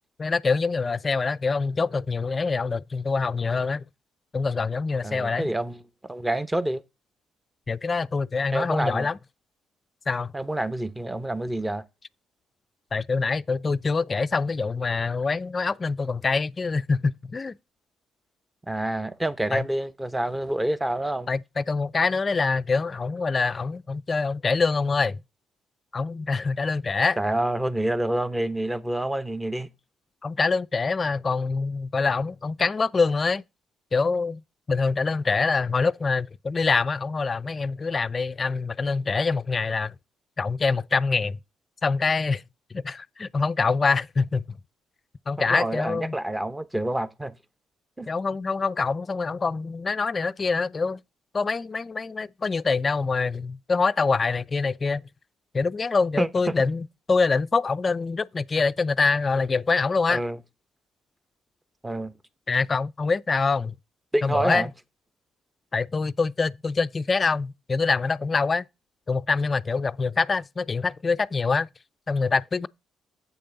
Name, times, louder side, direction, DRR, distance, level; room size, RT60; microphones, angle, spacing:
voice 1, 0.2-3.8 4.3-5.5 7.7-9.2 10.1-10.3 12.9-17.5 19.5-19.7 21.3-25.2 25.9-27.2 30.2-33.4 33.9-34.4 34.7-39.9 40.4-41.4 41.8-42.4 42.7-44.4 45.3-46.1 48.1-51.0 51.3-55.0 55.5-60.2 62.5-63.8 64.2-64.7 65.7-68.6 69.1-71.7 72.1-72.7, left 4 dB, 40° left, 0.4 m, -25 dB
voice 2, 5.0-5.8 6.1-6.8 8.5-9.1 10.3-11.8 18.7-21.3 27.2-29.7 45.4-47.4 48.0-48.1 56.2-56.3 60.1-60.4 61.8-62.1 64.1-64.7, right 1 dB, 15° right, 1.0 m, -27 dB
8.3 x 6.6 x 3.9 m
hypercardioid pair, 45°, 0 cm